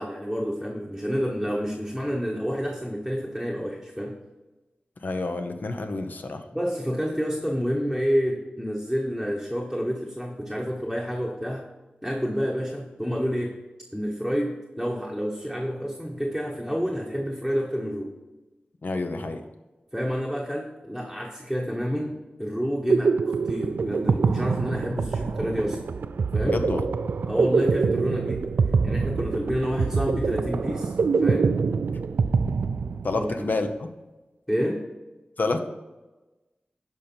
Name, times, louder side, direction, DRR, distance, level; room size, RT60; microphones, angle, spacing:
voice 1, 0.0-4.2 6.5-11.7 12.0-13.5 13.9-18.1 19.9-25.8 26.3-26.6 27.3-28.4 28.8-31.5 33.1-33.5 34.5-34.8, equal, 5° left, -2 dB, 1.2 m, -29 dB
voice 2, 5.0-6.4 18.8-19.4 26.4-26.9 33.0-33.7 35.4-35.6, left 3 dB, 65° left, 6 dB, 0.8 m, -28 dB
sound 1, 22.6-33.4, right 5 dB, 85° right, 0.4 m, -25 dB
10.5 x 5.4 x 4.4 m, 1.1 s
wide cardioid pair, 85°, 3 cm